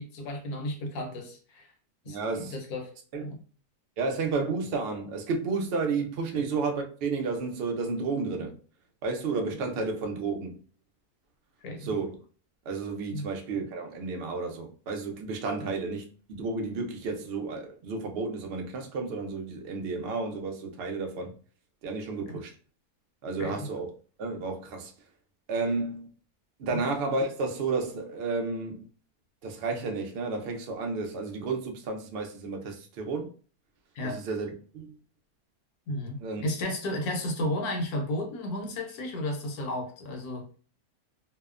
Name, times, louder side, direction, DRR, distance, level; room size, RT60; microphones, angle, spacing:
voice 1, 0.0-1.7 2.0-2.9 3.2-3.4 6.3-6.4 11.6-11.9 13.1-13.3 15.6-15.7 22.3-22.4 23.4-23.7 26.7-26.8 33.9-34.2 35.9-40.5, left 1 dB, 75° left, 1.2 m, -33 dB
voice 2, 2.1-2.6 3.1-3.2 4.0-8.6 9.0-10.6 11.8-12.2 12.7-21.3 21.8-22.5 23.2-23.9 24.2-24.9 25.5-26.1 26.6-28.9 29.4-33.3 34.0-35.0 36.2-36.4, right 4 dB, 70° right, 0.5 m, -32 dB
2.7 x 2.0 x 2.3 m
omnidirectional pair, 1.6 m